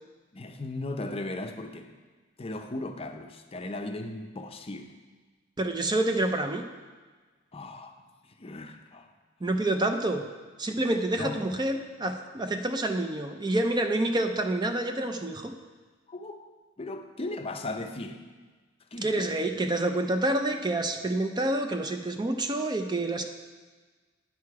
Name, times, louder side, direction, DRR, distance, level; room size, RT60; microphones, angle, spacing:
voice 1, 0.3-1.9 2.4-4.9 7.5-7.9 8.4-9.1 11.2-11.3 16.1-16.5 16.8-18.2 18.9-19.3, left 2 dB, 30° left, 6 dB, 0.6 m, -37 dB
voice 2, 5.6-6.6 9.4-10.2 10.6-15.5 19.0-23.2, right 1 dB, 20° right, 6 dB, 0.5 m, -28 dB
9.4 x 6.6 x 4.7 m, 1.4 s
head